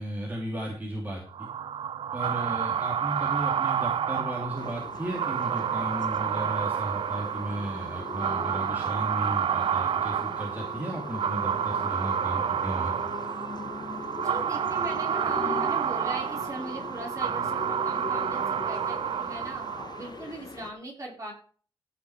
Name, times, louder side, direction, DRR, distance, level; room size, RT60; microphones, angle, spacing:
voice 1, 0.0-1.5 2.1-12.9, right 1 dB, 20° right, -2 dB, 2.8 m, -35 dB
sound 1, 1.3-20.2, right 8 dB, 70° right, 0.5 m, -29 dB
voice 2, 2.3-2.6 14.2-19.6 20.0-21.3, right 1 dB, 35° right, -1 dB, 4.5 m, -40 dB
sound 2, 4.6-20.7, left 4 dB, 50° left, 1.2 m, -41 dB
15.0 x 6.0 x 4.9 m, 0.43 s
wide cardioid pair, 140°, 10 cm